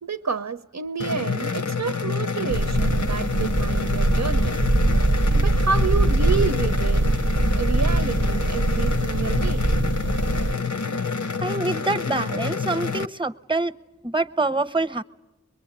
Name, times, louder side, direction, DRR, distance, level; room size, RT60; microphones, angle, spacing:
voice 1, 0.0-4.6 5.3-7.0 7.5-9.6, right 5 dB, 70° right, 10 dB, 0.8 m, -29 dB
sound 1, 1.0-13.1, left 5 dB, 80° left, 0.8 m, -28 dB
sound 2, 2.5-10.5, right 2 dB, 40° right, 0.8 m, -22 dB
voice 2, 11.4-13.7 14.0-15.0, right 2 dB, 15° right, 13 dB, 0.9 m, -25 dB
23.5 x 22.5 x 8.9 m, 1.0 s
wide cardioid pair, 40°, 29 cm